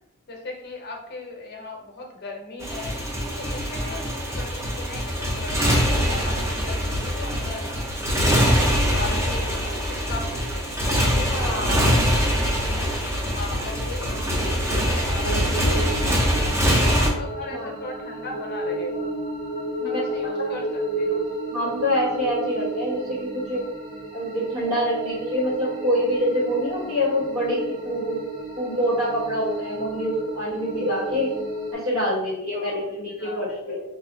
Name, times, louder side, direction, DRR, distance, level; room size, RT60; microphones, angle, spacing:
voice 1, 0.3-3.0 3.4-8.0 8.4-12.3 12.6-12.9 13.3-16.4 16.8-19.1 19.8-21.2 32.5-32.8 33.2-33.6, left 3 dB, 50° left, 1 dB, 0.7 m, -38 dB
Motorcycle, 2.6-17.1, equal, 15° right, 0.5 m, -23 dB
voice 2, 11.2-11.9 14.0-14.3 17.5-17.7 19.8-20.0 21.5-23.6 24.1-28.2 28.6-31.3 31.7-33.8, equal, 80° right, -5 dB, 1.3 m, -26 dB
sound 1, 15.2-31.7, right 1 dB, 40° right, 0.8 m, -32 dB
3.3 x 2.7 x 2.6 m, 0.84 s
head